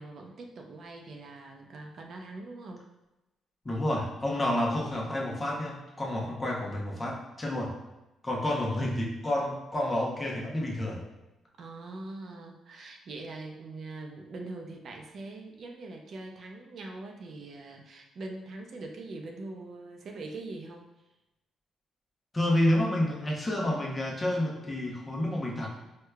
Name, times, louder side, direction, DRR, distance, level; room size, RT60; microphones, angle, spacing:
voice 1, 0.0-2.9 11.6-20.9, right 2 dB, 60° right, 2 dB, 0.5 m, -42 dB
voice 2, 3.6-7.7 8.2-11.0 22.3-25.7, left 1 dB, 20° left, -2 dB, 0.7 m, -29 dB
4.5 x 2.2 x 2.2 m, 0.98 s
cardioid pair, 90°, 0 cm